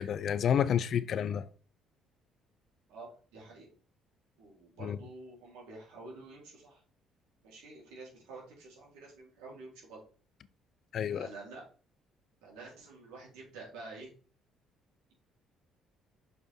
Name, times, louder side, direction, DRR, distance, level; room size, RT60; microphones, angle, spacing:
voice 1, 0.0-1.5 4.8-5.0 10.9-11.3, left 8 dB, 60° left, 0.6 m, -29 dB
voice 2, 2.9-3.7 4.4-6.8 7.4-10.0 11.1-11.6 12.4-14.1, right 3 dB, 85° right, 4.0 m, -49 dB
6.6 x 5.2 x 4.6 m
supercardioid pair, 70°, 0 cm